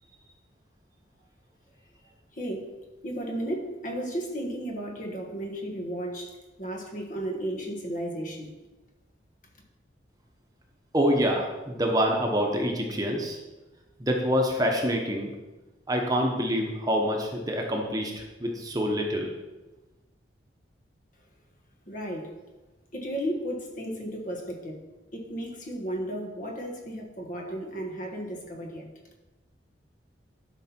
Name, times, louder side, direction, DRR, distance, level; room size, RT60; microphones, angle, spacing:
voice 1, 2.3-2.7 3.0-8.5 21.9-22.3 22.9-24.8 25.1-28.9, right 1 dB, 45° left, 1 dB, 1.5 m, -34 dB
voice 2, 10.9-13.4 14.0-15.3 15.9-19.3, equal, 20° right, 1 dB, 1.0 m, -26 dB
12.0 x 5.6 x 4.4 m, 1.1 s
head